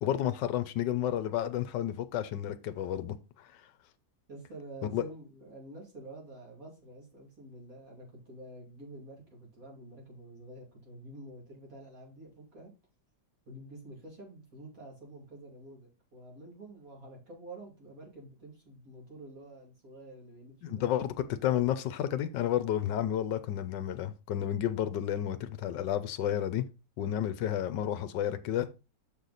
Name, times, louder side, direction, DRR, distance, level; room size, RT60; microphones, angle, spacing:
voice 1, 0.0-3.5 4.9-5.0 20.6-26.6 27.0-28.7, left 11 dB, 75° left, 1.3 m, -31 dB
voice 2, 4.3-12.7 13.5-20.8 22.3-22.4, right 1 dB, 45° right, 2.9 m, -48 dB
6.6 x 5.8 x 4.0 m
omnidirectional pair, 2.0 m